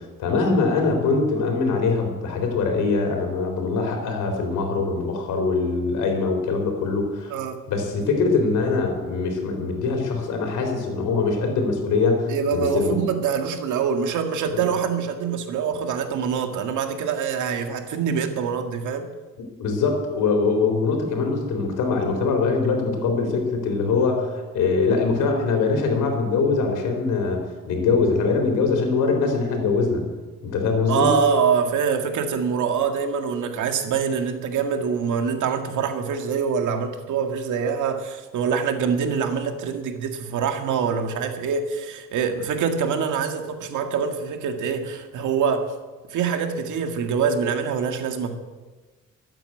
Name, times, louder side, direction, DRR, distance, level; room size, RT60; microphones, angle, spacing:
voice 1, 0.0-7.3 7.7-13.0 14.5-14.6 19.6-30.0 30.4-31.1, left 4 dB, 85° left, 3 dB, 3.9 m, -23 dB
voice 2, 7.3-7.6 12.3-19.1 30.9-45.7 46.1-48.4, right 6 dB, 80° right, 5 dB, 2.0 m, -25 dB
13.5 x 8.9 x 9.2 m, 1.3 s
cardioid pair, 90°, 30 cm